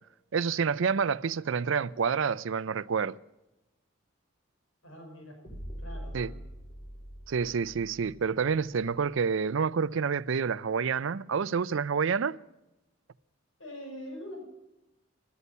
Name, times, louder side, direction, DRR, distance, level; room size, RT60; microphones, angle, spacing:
voice 1, 0.3-3.2 6.1-6.3 7.3-12.4, right 6 dB, 65° right, 0.4 m, -28 dB
voice 2, 4.8-5.4 5.8-6.5 13.6-14.4, equal, 75° left, 4.7 m, -43 dB
sound 1, 5.4-9.4, equal, 40° left, 4.8 m, -44 dB
16.5 x 13.0 x 5.5 m
head